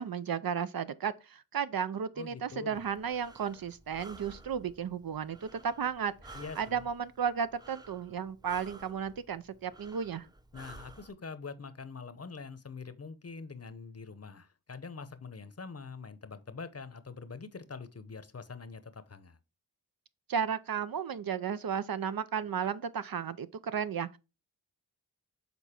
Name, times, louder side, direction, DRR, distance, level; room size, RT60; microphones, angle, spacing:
voice 1, 0.0-10.3 20.3-24.2, right 7 dB, 60° right, 0.6 m, -34 dB
voice 2, 2.2-2.8 6.3-6.8 10.5-19.4, left 4 dB, 35° left, 0.8 m, -44 dB
Breathing, 2.8-11.1, right 2 dB, 10° right, 0.7 m, -53 dB
6.9 x 4.0 x 4.3 m
cardioid pair, 40°, 41 cm